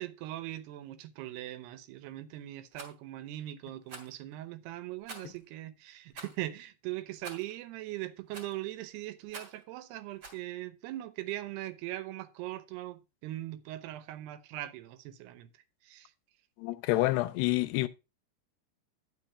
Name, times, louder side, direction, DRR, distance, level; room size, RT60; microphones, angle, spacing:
voice 1, 0.0-15.5 15.8-16.1, right 15 dB, 80° right, 2.9 m, -40 dB
Rattle, 2.7-2.9 3.9-4.2 5.1-5.4 6.1-6.4 7.2-7.5 8.3-8.6 9.3-9.6 10.2-10.4, right 2 dB, 35° right, 2.8 m, -46 dB
voice 2, 16.6-17.9, left 18 dB, 85° left, 2.8 m, -28 dB
10.5 x 6.1 x 4.8 m
omnidirectional pair, 4.7 m